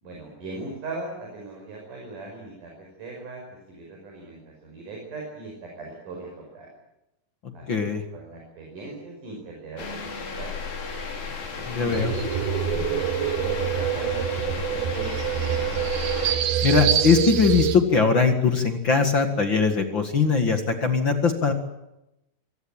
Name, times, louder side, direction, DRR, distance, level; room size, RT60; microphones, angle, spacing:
voice 1, 0.0-6.7 7.5-7.7 7.9-10.5 11.7-12.1 12.6-15.6, right 2 dB, 55° right, 0 dB, 6.8 m, -39 dB
voice 2, 7.7-8.0 11.6-12.1 16.6-21.5, left 5 dB, 45° left, 6 dB, 1.8 m, -21 dB
sound 1, 9.8-16.3, left 4 dB, 65° left, 5.4 m, -33 dB
sound 2, 11.9-17.8, right 9 dB, 70° right, 3.0 m, -25 dB
26.0 x 17.5 x 8.8 m, 0.89 s
omnidirectional pair, 4.5 m